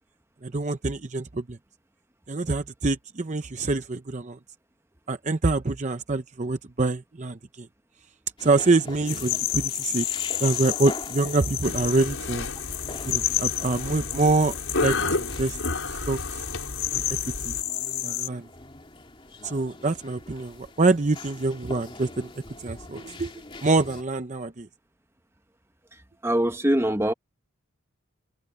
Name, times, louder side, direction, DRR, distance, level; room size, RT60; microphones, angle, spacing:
voice 1, 0.4-1.6 2.3-4.4 5.1-7.7 8.4-10.1 10.4-12.5 13.1-14.5 14.8-16.2 16.9-17.0 17.5-17.6 18.0-18.5 19.4-22.3 22.6-23.3 23.6-24.7, right 3 dB, 35° right, 0.7 m, -25 dB
sound 1, 8.4-24.0, left 2 dB, 25° left, 2.8 m, -43 dB
sound 2, 9.1-18.3, left 13 dB, 50° left, 1.6 m, -31 dB
sound 3, 11.6-17.6, left 2 dB, 75° left, 4.7 m, -32 dB
voice 2, 26.2-27.1, right 1 dB, 10° right, 1.1 m, -22 dB
head